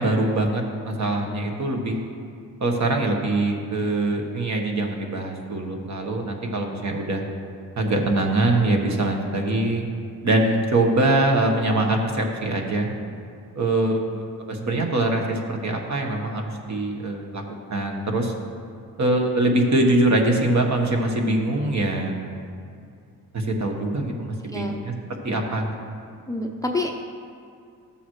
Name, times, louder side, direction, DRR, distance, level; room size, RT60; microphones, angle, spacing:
voice 1, 0.0-2.0 2.6-7.2 7.8-9.9 10.2-12.9 13.5-17.4 17.7-18.3 19.0-22.1 23.3-24.9 25.2-25.7, right 2 dB, 50° right, 2 dB, 1.3 m, -23 dB
voice 2, 24.5-24.8 26.3-26.9, left 2 dB, 10° left, 2 dB, 0.6 m, -27 dB
12.5 x 7.0 x 3.1 m, 2.4 s
cardioid pair, 85°, 37 cm